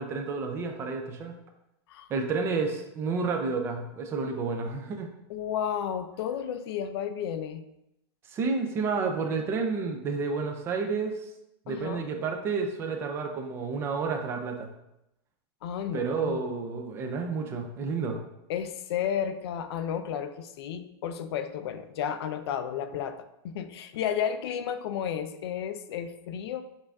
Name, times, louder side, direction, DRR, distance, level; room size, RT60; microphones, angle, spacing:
voice 1, 0.0-1.3 2.1-5.1 8.3-11.3 11.7-14.7 15.9-18.2, right 4 dB, 20° right, 4 dB, 0.3 m, -30 dB
voice 2, 5.3-7.6 11.7-12.1 15.6-16.4 18.5-26.6, left 8 dB, 70° left, 10 dB, 0.4 m, -32 dB
5.4 x 2.5 x 3.4 m, 0.85 s
supercardioid pair, 165°, 14 cm